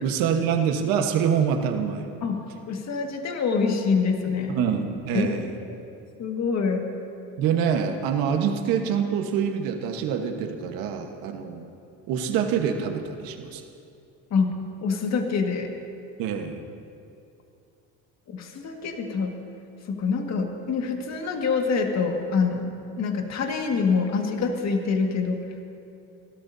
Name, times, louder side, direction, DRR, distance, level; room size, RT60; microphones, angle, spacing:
voice 1, 0.0-2.0 4.5-5.5 7.4-11.7 12.1-13.6 16.2-16.6, right 7 dB, 80° right, 4 dB, 1.4 m, -25 dB
voice 2, 2.2-4.6 5.1-5.3 6.2-6.9 14.3-15.7 18.3-19.4 19.9-22.7 23.0-25.4, left 5 dB, 50° left, 2 dB, 1.9 m, -25 dB
30.0 x 13.0 x 2.8 m, 2.6 s
supercardioid pair, 100°, 35 cm